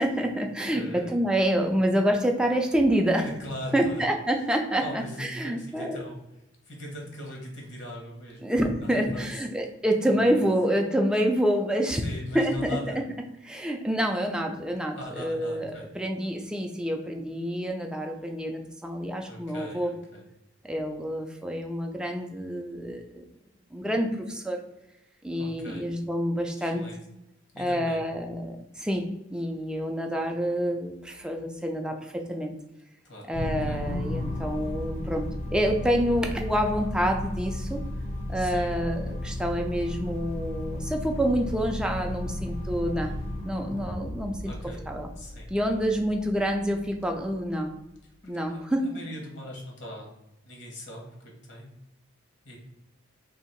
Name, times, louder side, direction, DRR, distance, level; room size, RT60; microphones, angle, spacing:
voice 1, 0.0-3.3 3.7-6.0 8.4-12.0 12.3-12.7 13.4-19.9 20.6-23.2 23.7-24.6 25.2-26.8 27.6-32.5 33.3-35.3 35.5-37.8 38.3-43.1 43.4-44.4 44.9-45.1 45.5-47.7 48.3-48.9, equal, 5° right, 2 dB, 0.4 m, -27 dB
voice 2, 0.7-1.2 3.1-4.0 4.4-4.5 4.8-9.5 10.1-10.4 11.8-13.1 14.9-15.9 19.2-20.2 25.3-25.9 26.6-27.0 27.5-28.0 33.0-33.3 33.6-33.8 38.3-38.7 44.4-44.8 45.2-45.7 48.0-50.1 50.4-51.7 52.4-52.6, left 1 dB, 60° left, -1 dB, 1.2 m, -40 dB
sound 1, 33.3-47.8, left 1 dB, 35° left, 0.7 m, -34 dB
2.9 x 2.7 x 4.4 m, 0.89 s
head